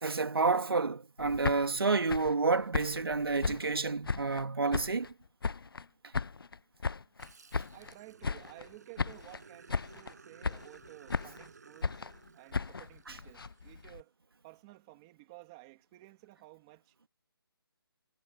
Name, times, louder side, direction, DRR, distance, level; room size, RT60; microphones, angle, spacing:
voice 1, 0.0-5.1, right 4 dB, 70° right, 2.4 m, -29 dB
sound 1, 1.2-4.4 4.7-5.9 6.1-7.9 8.2-8.7 9.0-9.4 9.7-10.1 10.4-11.5 11.8-14.0, left 4 dB, 65° left, 0.8 m, -36 dB
Growling, 7.2-13.9, right 4 dB, 45° right, 7.9 m, -57 dB
voice 2, 7.7-12.0 12.3-14.1 14.4-16.9, right 21 dB, 10° right, 3.2 m, -54 dB
hypercardioid pair, 180°, 13 cm